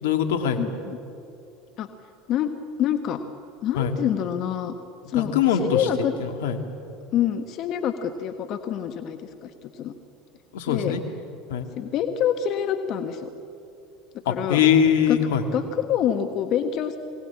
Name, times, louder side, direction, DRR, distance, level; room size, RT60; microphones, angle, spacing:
voice 1, 0.0-0.6 3.7-4.0 5.2-5.9 6.2-6.6 10.5-11.0 11.5-11.7 14.3-15.4, left 8 dB, 80° left, 7 dB, 2.0 m, -22 dB
voice 2, 0.6-1.0 1.8-1.9 2.3-2.5 2.8-3.2 3.6-4.7 5.1-6.1 7.1-9.9 10.7-11.0 11.8-13.3 14.3-14.6 15.1-15.2 15.5-17.0, left 9 dB, 50° left, 8 dB, 1.2 m, -26 dB
22.5 x 18.0 x 8.6 m, 2.6 s
hypercardioid pair, 85°, 0 cm